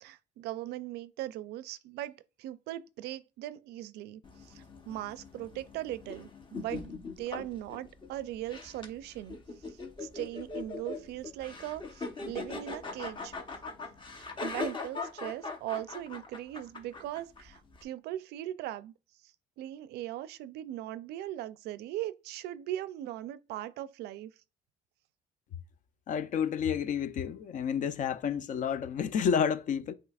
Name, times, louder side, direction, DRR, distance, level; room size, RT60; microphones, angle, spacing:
voice 1, 0.0-9.4 9.7-13.3 14.1-18.9 19.6-24.3, right 13 dB, 80° right, 0.4 m, -39 dB
sound 1, 4.2-17.8, left 3 dB, 30° left, 0.9 m, -41 dB
voice 2, 26.1-29.9, left 7 dB, 50° left, 0.5 m, -30 dB
8.1 x 2.8 x 2.3 m
cardioid pair, 110°, 17 cm